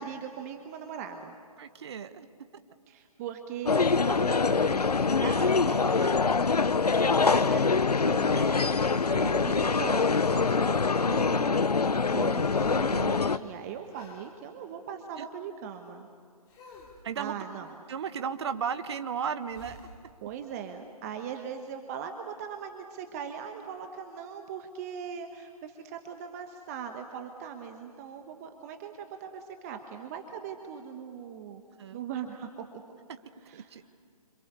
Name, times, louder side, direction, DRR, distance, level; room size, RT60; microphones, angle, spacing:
voice 1, 0.0-1.4 2.9-8.8 9.4-16.1 17.2-17.7 20.2-31.6 31.9-32.7 33.5-33.7, right 7 dB, 25° right, 5 dB, 1.2 m, -40 dB
voice 2, 1.6-2.3 8.0-8.6 9.1-9.5 15.2-15.3 17.0-17.3 17.9-19.8 31.8-32.0 33.5-33.8, right 7 dB, 45° right, 10 dB, 1.3 m, -35 dB
sound 1, 3.7-13.4, left 4 dB, 85° left, 0.8 m, -24 dB
sound 2, 11.0-11.5 11.8-14.4 16.5-17.1 19.5-20.0 22.9-23.0, left 3 dB, 20° left, 3.5 m, -53 dB
28.0 x 26.5 x 6.9 m, 2.3 s
figure-of-eight pair, 145°, 20 cm